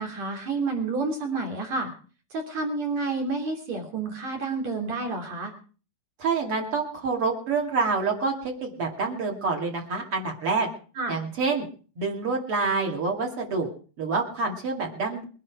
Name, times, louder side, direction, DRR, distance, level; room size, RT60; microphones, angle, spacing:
voice 1, 0.0-1.9 2.3-5.5 11.0-11.2, right 3 dB, 65° right, 2 dB, 4.4 m, -29 dB
voice 2, 6.2-10.7 11.1-11.7 12.0-13.7 14.0-15.2, right 4 dB, 50° right, 1 dB, 3.3 m, -27 dB
22.0 x 10.5 x 4.8 m, 0.39 s
omnidirectional pair, 3.4 m